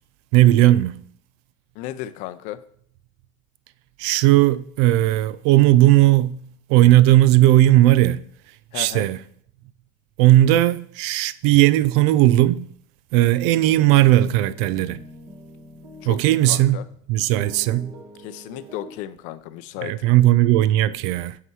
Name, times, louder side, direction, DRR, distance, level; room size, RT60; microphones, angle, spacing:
voice 1, 0.3-1.0 4.0-6.4 6.7-8.2 8.7-9.2 10.2-12.7 13.1-15.0 16.1-16.8 17.1-17.9 19.8-21.4, right 15 dB, 65° right, 0.4 m, -16 dB
voice 2, 1.7-2.6 8.7-9.1 16.0-16.8 18.2-20.1, left 14 dB, 60° left, 0.5 m, -34 dB
sound 1, 13.5-16.9 17.4-18.9, right 1 dB, 35° right, 1.4 m, -43 dB
5.8 x 5.6 x 4.7 m
supercardioid pair, 135°, 15 cm